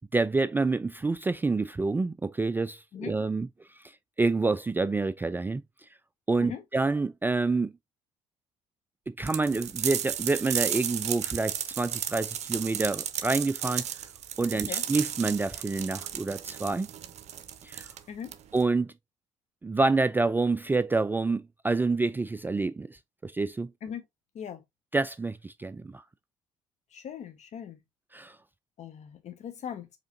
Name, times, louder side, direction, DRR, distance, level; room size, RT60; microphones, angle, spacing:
voice 1, 0.1-3.5 4.2-5.6 6.3-7.7 9.1-13.9 14.4-16.9 17.6-17.9 18.5-18.9 19.6-23.7 24.9-26.0 28.1-28.4, right 3 dB, 15° right, 0.3 m, -27 dB
sound 1, 9.3-18.7, right 10 dB, 50° right, 0.6 m, -34 dB
voice 2, 14.5-14.8 18.1-18.4 23.8-24.0 24.3-24.6 26.9-27.8 28.8-29.9, left 8 dB, 50° left, 1.2 m, -39 dB
5.0 x 3.6 x 2.7 m
hypercardioid pair, 50°, 15 cm